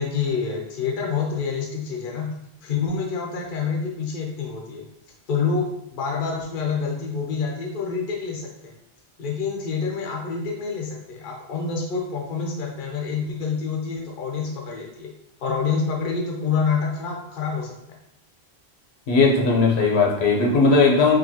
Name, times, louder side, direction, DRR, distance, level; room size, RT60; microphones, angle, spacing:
voice 1, 0.0-2.3 2.6-4.9 5.3-8.7 9.2-15.1 15.4-17.8, left 5 dB, 55° left, -1 dB, 0.8 m, -27 dB
voice 2, 19.1-21.2, left 3 dB, 75° left, -1 dB, 1.1 m, -18 dB
5.0 x 2.6 x 2.8 m, 0.81 s
omnidirectional pair, 1.1 m